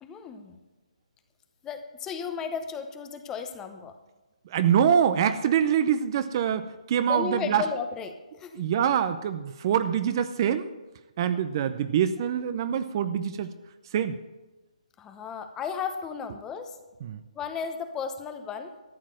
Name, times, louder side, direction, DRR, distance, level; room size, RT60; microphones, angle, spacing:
voice 1, 0.0-0.6 1.6-4.0 7.0-8.7 11.2-11.4 15.0-16.8 17.3-18.7, left 6 dB, 15° left, 7 dB, 0.9 m, -34 dB
voice 2, 4.5-7.6 8.5-10.6 11.2-13.5 13.9-14.2 17.0-17.2, right 8 dB, 35° right, 11 dB, 0.6 m, -25 dB
13.5 x 7.4 x 7.6 m, 1.1 s
hypercardioid pair, 155°, 4 cm